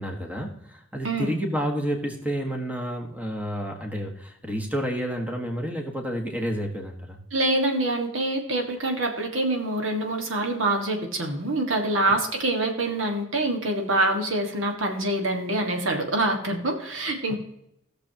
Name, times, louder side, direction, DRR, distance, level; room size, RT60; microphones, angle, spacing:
voice 1, 0.0-7.2 12.1-12.2 17.3-17.4, equal, 10° right, 2 dB, 1.5 m, -30 dB
voice 2, 7.3-17.4, right 2 dB, 80° right, 2 dB, 1.8 m, -25 dB
16.5 x 6.8 x 2.9 m, 0.78 s
head